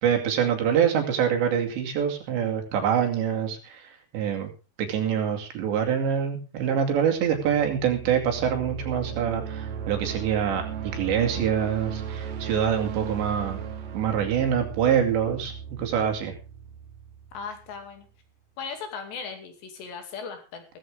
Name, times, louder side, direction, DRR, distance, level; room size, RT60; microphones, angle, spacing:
voice 1, 0.0-4.5 4.8-10.7 10.9-13.6 13.9-15.5 15.8-16.3, right 8 dB, 75° right, 4 dB, 4.7 m, -25 dB
sound 1, 7.2-17.9, right 7 dB, 55° right, 2.1 m, -36 dB
voice 2, 17.3-18.1 18.6-20.7, left 5 dB, 70° left, 6 dB, 4.7 m, -37 dB
16.5 x 14.0 x 3.6 m, 0.30 s
omnidirectional pair, 5.2 m